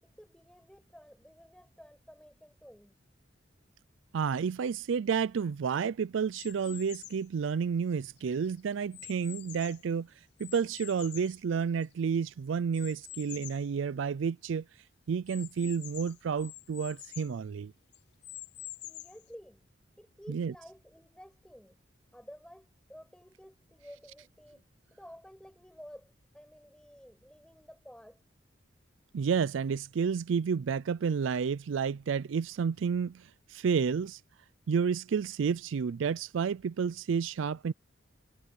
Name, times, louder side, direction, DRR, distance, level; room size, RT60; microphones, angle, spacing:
voice 1, 0.0-3.0 18.8-19.7 20.0-21.8 22.1-24.6 24.9-28.2, equal, 5° left, 7.3 m, -52 dB
voice 2, 4.1-10.1 10.4-14.6 15.1-17.7 20.3-20.5 29.1-34.2 34.7-37.7, right 6 dB, 75° right, 0.4 m, -30 dB
sound 1, 6.3-7.3 7.9-9.9 10.4-12.1 12.7-13.7 14.2-14.3 14.5-14.6 15.3-17.4 17.9-19.3, left 16 dB, 55° left, 0.6 m, -47 dB
head